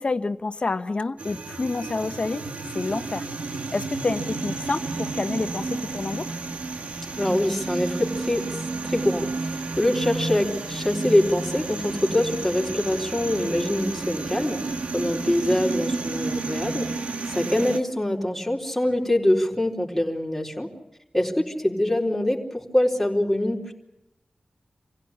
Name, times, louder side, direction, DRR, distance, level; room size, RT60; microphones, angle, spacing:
voice 1, 0.0-2.5 2.7-3.3 3.7-6.3, left 3 dB, 50° left, 11 dB, 1.0 m, -28 dB
sound 1, 1.2-17.8, right 3 dB, 80° right, 1.4 m, -31 dB
voice 2, 7.2-8.5 8.8-20.7 21.1-23.7, left 1 dB, ahead, -2 dB, 4.1 m, -24 dB
26.5 x 16.5 x 8.6 m, 0.91 s
wide cardioid pair, 65°, 2 cm